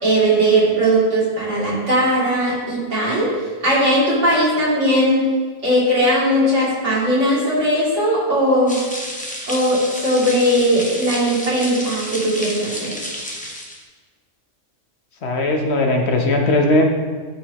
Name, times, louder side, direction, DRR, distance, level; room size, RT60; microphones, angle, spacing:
voice 1, 0.0-3.3 3.6-5.3 5.6-8.8 9.5-12.9, right 1 dB, 75° right, -8 dB, 3.1 m, -18 dB
sound 1, 8.7-13.8, equal, 5° left, 0.9 m, -31 dB
voice 2, 15.2-16.8, left 2 dB, 65° left, 2 dB, 1.2 m, -18 dB
13.5 x 4.9 x 2.9 m, 1.4 s
omnidirectional pair, 1.3 m